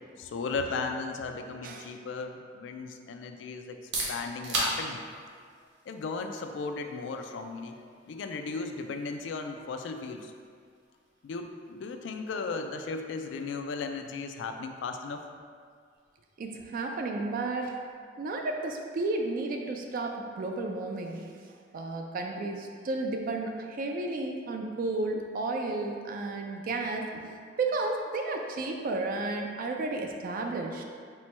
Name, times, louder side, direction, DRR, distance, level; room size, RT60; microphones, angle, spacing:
voice 1, 0.2-3.8 4.1-5.1 5.9-10.3 11.2-15.2, left 4 dB, 80° left, 6 dB, 0.3 m, -36 dB
sound 1, 3.6-19.3, right 2 dB, 70° right, 0.8 m, -42 dB
voice 2, 16.4-17.8 18.2-21.3 21.7-30.8, right 2 dB, 50° right, 2 dB, 0.3 m, -32 dB
4.3 x 2.2 x 4.3 m, 2.1 s
head